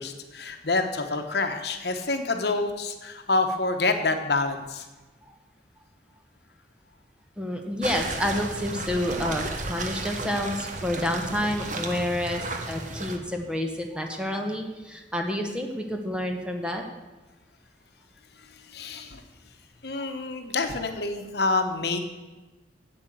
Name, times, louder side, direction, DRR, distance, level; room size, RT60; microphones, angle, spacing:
voice 1, 0.0-4.8 18.7-19.2 19.8-22.0, left 3 dB, 60° left, 6 dB, 1.0 m, -27 dB
voice 2, 7.4-16.8, left 1 dB, 5° right, 3 dB, 1.0 m, -29 dB
sound 1, 7.8-13.2, right 3 dB, 45° right, 1.1 m, -34 dB
8.8 x 8.0 x 7.6 m, 1.2 s
head